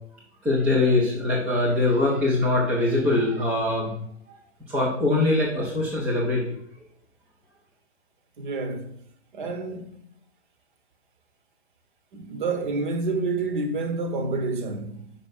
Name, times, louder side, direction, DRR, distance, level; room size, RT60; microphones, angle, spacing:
voice 1, 0.4-4.0 4.7-6.4, left 2 dB, 5° right, 0.3 m, -22 dB
voice 2, 8.4-9.0 9.3-10.0 12.1-15.1, right 3 dB, 45° right, 1.0 m, -28 dB
5.4 x 4.6 x 5.9 m
figure-of-eight pair, 115°, 34 cm